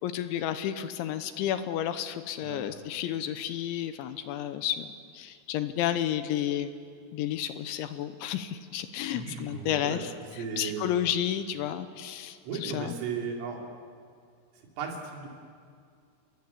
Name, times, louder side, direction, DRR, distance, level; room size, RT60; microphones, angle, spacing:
voice 1, 0.0-6.8 7.1-10.1 10.4-12.9, left 11 dB, 80° left, 10 dB, 3.0 m, -31 dB
voice 2, 9.1-10.0 10.4-10.9 12.4-13.6 14.5-15.3, right 5 dB, 80° right, 0 dB, 5.8 m, -36 dB
28.5 x 21.5 x 8.4 m, 2.2 s
omnidirectional pair, 5.7 m